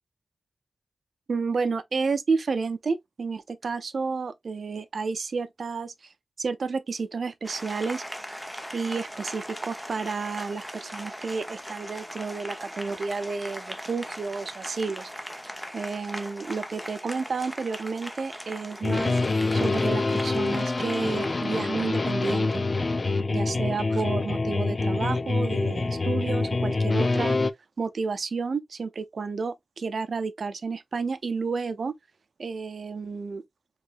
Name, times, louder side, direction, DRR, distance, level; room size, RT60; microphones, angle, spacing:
voice 1, 1.3-5.9 6.4-8.0 8.7-15.1 15.7-19.2 19.5-22.6 23.3-27.4 27.8-31.9 32.4-33.4, right 4 dB, 70° right, 0.6 m, -31 dB
Applause, 7.4-21.5, equal, ahead, 0.9 m, -40 dB
sound 1, 18.8-27.5, left 3 dB, 45° left, 0.5 m, -26 dB
4.8 x 3.1 x 2.5 m
wide cardioid pair, 90°, 0 cm